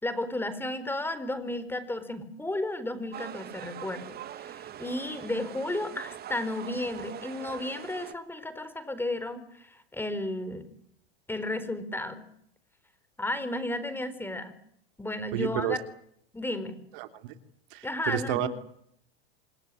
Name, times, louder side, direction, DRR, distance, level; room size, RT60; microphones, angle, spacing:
voice 1, 0.0-10.7 11.3-12.2 13.2-14.5 15.0-15.8 16.3-16.8 17.8-18.5, left 1 dB, 5° left, 13 dB, 4.4 m, -33 dB
sound 1, 3.1-8.1, right 10 dB, 30° right, 2.1 m, -43 dB
voice 2, 15.3-15.8 16.9-17.3 17.7-18.5, right 13 dB, 65° right, 9 dB, 3.3 m, -31 dB
27.0 x 18.5 x 10.0 m, 0.69 s
hypercardioid pair, 115°, 30 cm